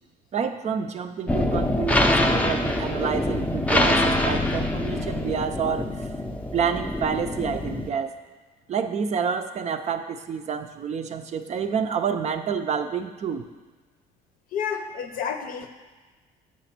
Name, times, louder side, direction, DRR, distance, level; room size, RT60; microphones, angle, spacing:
voice 1, 0.3-5.9 6.5-8.2 8.7-13.4, right 6 dB, 40° right, 8 dB, 0.5 m, -28 dB
sound 1, 1.3-7.9, left 1 dB, 10° left, 0.5 m, -24 dB
voice 2, 14.5-15.7, left 7 dB, 55° left, 7 dB, 0.7 m, -30 dB
7.3 x 4.1 x 5.9 m, 1.3 s
cardioid pair, 110°, 17 cm